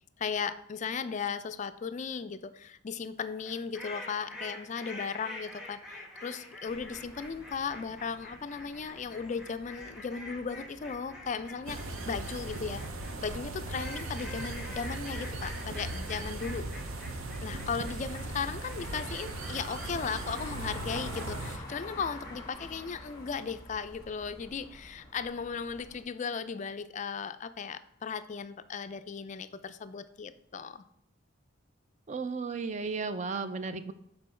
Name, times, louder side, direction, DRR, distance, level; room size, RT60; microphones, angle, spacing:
voice 1, 0.2-12.8 13.2-16.7 17.4-30.8, left 6 dB, 35° left, 12 dB, 0.3 m, -36 dB
sound 1, 3.4-22.5, left 2 dB, 5° right, 1.3 m, -47 dB
sound 2, 6.7-26.0, left 2 dB, 20° left, 1.3 m, -49 dB
sound 3, 11.7-21.6, right 2 dB, 85° right, 0.7 m, -38 dB
voice 2, 32.1-33.9, right 4 dB, 35° right, 11 dB, 0.4 m, -34 dB
7.6 x 4.4 x 4.2 m, 0.76 s
head